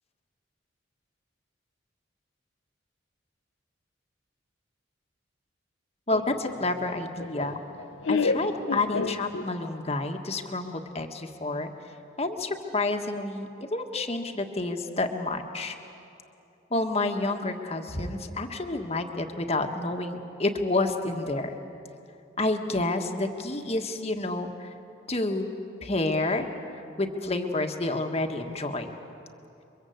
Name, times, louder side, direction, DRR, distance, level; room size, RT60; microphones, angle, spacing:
Laughter, 6.1-9.8, left 4 dB, 85° left, 0.8 m, -30 dB
voice 1, 6.1-7.6 8.1-11.7 12.2-15.8 16.7-21.6 22.4-24.7 25.1-25.5 25.8-26.5 26.7-28.9, left 2 dB, 35° left, 4 dB, 1.6 m, -29 dB
30.0 x 23.5 x 8.0 m, 2.8 s
head